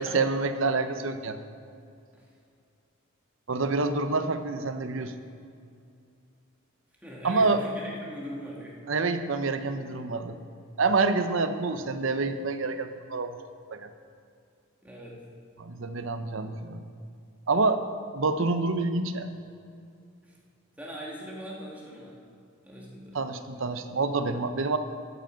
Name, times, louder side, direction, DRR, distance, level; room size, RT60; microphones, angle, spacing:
voice 1, 0.0-1.4 3.5-5.1 7.2-7.6 8.9-10.4 10.8-13.4 13.7-13.9 15.6-16.8 17.5-17.8 18.1-19.3 23.1-24.8, right 3 dB, 65° right, 9 dB, 0.7 m, -27 dB
voice 2, 7.0-8.8 14.8-15.2 20.2-20.4 20.8-22.2 22.6-23.2, equal, 5° right, -4 dB, 1.8 m, -41 dB
13.0 x 7.8 x 5.1 m, 2.4 s
head